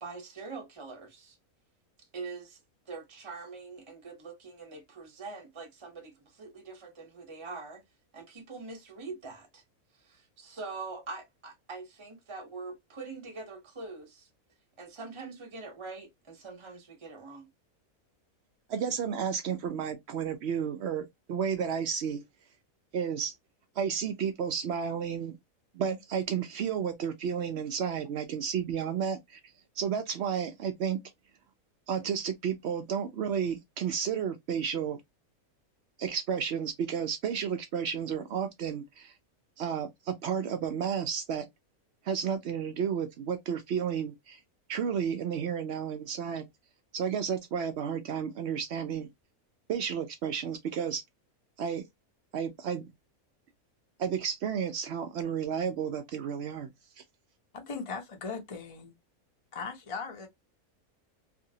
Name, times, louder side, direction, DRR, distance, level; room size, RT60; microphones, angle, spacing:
voice 1, 0.0-1.4 2.1-2.6 2.9-7.8 8.1-9.6 10.0-14.3 14.8-17.5, right 4 dB, 25° right, 0.8 m, -43 dB
voice 2, 18.7-22.2 22.9-23.3 23.8-25.4 25.7-29.4 29.8-31.0 31.9-35.0 36.0-39.1 39.6-41.5 42.0-44.4 44.7-46.5 46.9-49.1 49.7-51.0 51.6-51.8 52.3-52.9 54.0-56.7, right 7 dB, 65° right, 0.6 m, -32 dB
voice 3, 57.5-58.9 59.5-60.3, left 4 dB, 35° left, 0.5 m, -38 dB
2.8 x 2.6 x 2.7 m
omnidirectional pair, 1.5 m